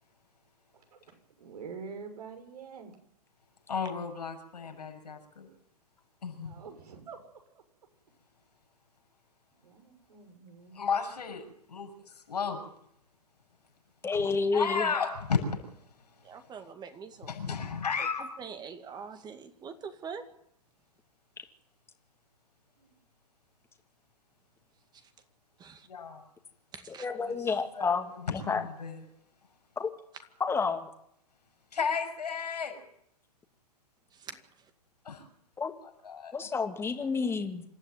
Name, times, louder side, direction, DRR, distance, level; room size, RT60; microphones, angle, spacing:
voice 1, 1.4-2.9 6.4-7.2 7.5-7.6 9.6-10.8 22.8-23.0, right 5 dB, 70° right, 4 dB, 6.6 m, -46 dB
voice 2, 3.7-5.5 6.2-6.5 10.7-12.6 14.1-15.6 16.4-16.5 17.2-18.3 25.8-26.2 27.1-29.0 31.7-32.8 35.1-35.2 36.0-36.5, left 5 dB, 75° left, 4 dB, 6.8 m, -34 dB
voice 3, 14.0-14.9 21.4-21.5 26.9-28.7 29.8-29.9 30.4-30.9 35.6-35.7 36.3-37.6, left 4 dB, 10° left, 5 dB, 2.5 m, -30 dB
voice 4, 16.2-17.5 18.0-18.1 18.4-20.2 24.9-25.0 25.6-25.9 26.7-27.1 34.1-34.7, right 6 dB, 20° right, 8 dB, 2.3 m, -44 dB
26.5 x 13.0 x 9.4 m, 0.74 s
hypercardioid pair, 115°, 21 cm